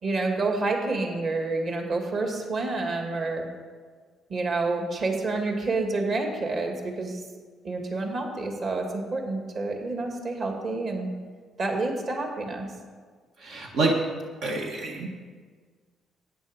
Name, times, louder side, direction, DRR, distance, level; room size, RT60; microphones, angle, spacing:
voice 1, 0.0-3.5 4.3-7.2 7.6-11.1 11.6-12.7, right 3 dB, 50° right, 2 dB, 2.4 m, -28 dB
voice 2, 13.4-14.0 14.4-15.1, right 3 dB, 80° right, -1 dB, 1.8 m, -27 dB
14.0 x 9.8 x 5.4 m, 1.5 s
cardioid pair, 115°, 0 cm